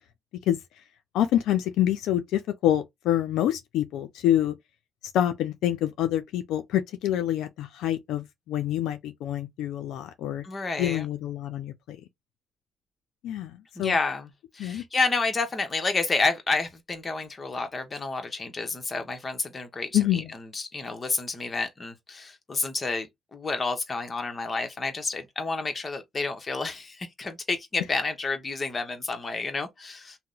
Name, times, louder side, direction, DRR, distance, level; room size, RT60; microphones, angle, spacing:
voice 1, 1.1-4.5 5.1-10.4 10.8-12.0 13.2-13.9 14.6-14.8 19.9-20.3, left 12 dB, 90° left, 0.4 m, -26 dB
voice 2, 10.4-11.1 13.7-30.2, left 3 dB, 30° left, 0.9 m, -30 dB
2.8 x 2.0 x 3.7 m
cardioid pair, 90°, 0 cm